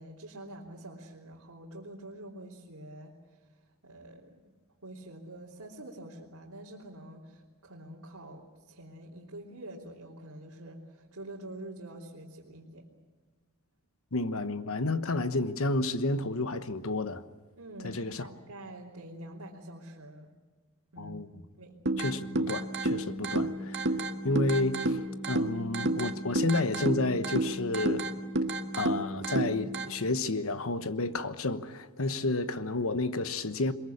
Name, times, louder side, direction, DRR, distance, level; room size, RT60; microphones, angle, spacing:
voice 1, 0.0-3.1 3.8-4.4 4.8-12.8 17.6-20.3 20.9-21.8, right 1 dB, 85° right, 3.2 m, -46 dB
voice 2, 14.1-17.2 17.8-18.2 21.0-21.3 22.0-23.8 24.2-25.0 25.3-28.1 28.7-33.7, left 2 dB, 70° left, 1.2 m, -30 dB
sound 1, 21.9-29.9, right 1 dB, 55° right, 1.7 m, -31 dB
22.5 x 22.0 x 8.6 m
head